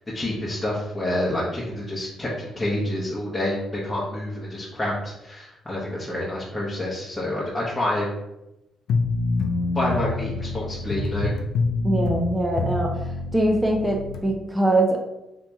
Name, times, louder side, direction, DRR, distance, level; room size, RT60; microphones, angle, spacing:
voice 1, 0.1-8.2 9.7-11.3, left 1 dB, 15° left, -7 dB, 0.9 m, -28 dB
sound 1, 8.9-14.2, left 3 dB, 80° left, 0.4 m, -26 dB
voice 2, 11.8-12.9 13.3-15.0, right 1 dB, 10° right, 1 dB, 0.5 m, -22 dB
2.9 x 2.9 x 3.4 m, 0.92 s
cardioid pair, 90°, 0 cm